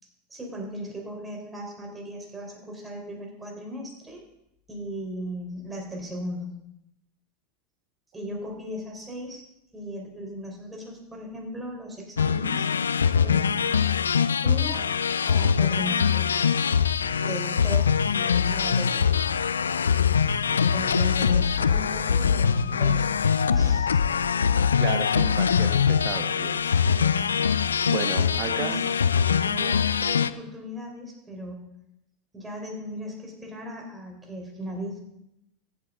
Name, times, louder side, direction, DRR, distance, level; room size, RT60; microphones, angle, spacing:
voice 1, 0.3-4.2 4.7-6.5 8.1-9.4 9.7-12.7 13.2-13.9 14.4-14.9 15.2-16.3 17.2-19.1 20.7-24.0 26.6-27.4 28.1-28.8 29.4-31.6 32.3-35.0, equal, 15° right, 0 dB, 3.9 m, -37 dB
sound 1, 12.2-30.3, left 7 dB, 90° left, 0.4 m, -23 dB
voice 2, 24.8-26.6 27.8-28.8, right 8 dB, 50° right, 8 dB, 1.2 m, -33 dB
15.0 x 7.8 x 3.7 m, 0.84 s
hypercardioid pair, 90°, 0 cm